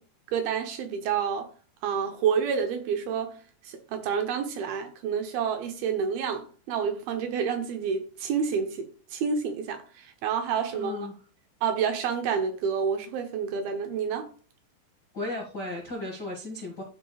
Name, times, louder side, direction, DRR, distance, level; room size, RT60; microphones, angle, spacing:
voice 1, 0.3-1.5 1.8-3.4 3.6-10.9 11.6-14.3, right 6 dB, 75° right, 2.5 m, -29 dB
voice 2, 10.7-11.2 15.1-16.8, left 2 dB, 60° left, 1.0 m, -35 dB
12.5 x 5.0 x 2.3 m
omnidirectional pair, 4.8 m